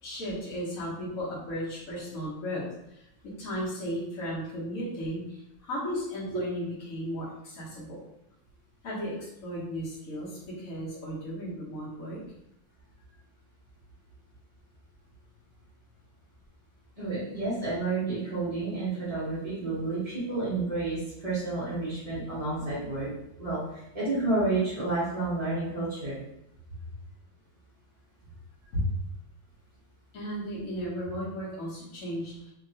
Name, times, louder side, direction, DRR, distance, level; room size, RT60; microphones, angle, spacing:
voice 1, 0.0-3.1 3.4-8.0 8.8-12.2 28.7-29.0 30.1-32.5, equal, 55° left, -8 dB, 1.0 m, -35 dB
voice 2, 17.0-23.1 23.4-26.2, right 3 dB, 35° right, -11 dB, 0.5 m, -30 dB
2.9 x 2.8 x 2.7 m, 0.82 s
omnidirectional pair, 2.2 m